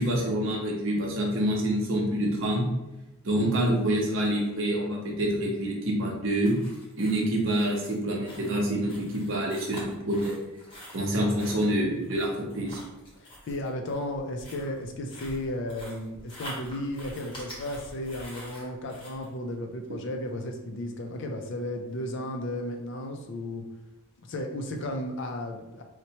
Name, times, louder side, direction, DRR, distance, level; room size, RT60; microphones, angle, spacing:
voice 1, 0.0-2.6 3.2-6.6 7.0-10.3 10.9-12.8, right 1 dB, 55° right, -1 dB, 0.8 m, -27 dB
sound 1, 6.4-19.3, equal, 25° left, 0.9 m, -46 dB
voice 2, 13.2-23.6 24.3-25.8, left 1 dB, 55° left, 4 dB, 0.4 m, -34 dB
4.3 x 2.1 x 2.8 m, 1.0 s
head